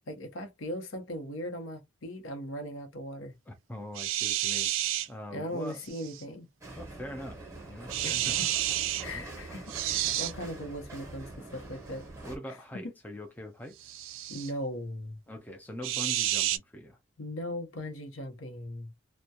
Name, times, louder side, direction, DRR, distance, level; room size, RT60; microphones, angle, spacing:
voice 1, 0.1-3.3 5.3-6.5 8.0-8.5 9.0-12.1 14.3-15.2 17.2-18.9, equal, 85° left, 0.8 m, -38 dB
voice 2, 3.5-4.7 5.1-5.8 6.8-7.4 7.7-8.5 9.1-9.2 12.2-13.9 15.3-17.0, equal, 10° left, 0.4 m, -42 dB
sound 1, 4.0-5.1 5.9-6.2 7.9-9.0 9.7-10.3 13.8-14.5 15.8-16.6, right 13 dB, 80° right, 0.3 m, -30 dB
sound 2, 6.6-12.4, right 2 dB, 15° right, 0.7 m, -44 dB
2.3 x 2.1 x 2.7 m
head